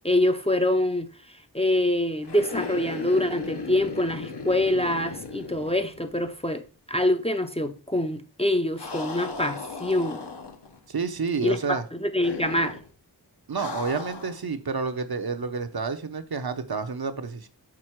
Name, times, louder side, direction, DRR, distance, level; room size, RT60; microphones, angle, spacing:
voice 1, 0.0-1.1 1.5-6.6 6.9-10.2 11.4-12.8, left 1 dB, 15° left, 0.5 m, -25 dB
sound 1, 2.2-6.4 6.6-6.7 8.8-10.8 12.2-12.9 13.6-14.4, left 4 dB, 75° left, 1.0 m, -36 dB
voice 2, 10.9-11.8 13.5-17.5, right 5 dB, 60° right, 0.8 m, -29 dB
6.1 x 4.1 x 4.5 m
wide cardioid pair, 45°, 42 cm